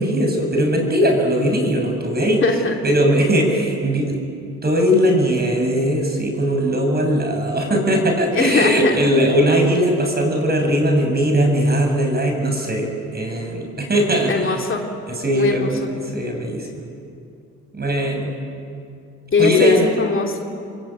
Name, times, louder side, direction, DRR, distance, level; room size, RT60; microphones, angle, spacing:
voice 1, 0.0-2.4 2.8-4.2 4.6-14.6 15.1-16.9 17.7-18.4 19.4-19.9, equal, 30° right, 2 dB, 7.8 m, -19 dB
voice 2, 2.4-2.8 8.3-8.9 14.3-14.8 15.3-15.9 19.3-20.5, left 4 dB, 40° left, 2 dB, 3.0 m, -20 dB
29.0 x 22.0 x 9.3 m, 2.5 s
cardioid pair, 90°, 30 cm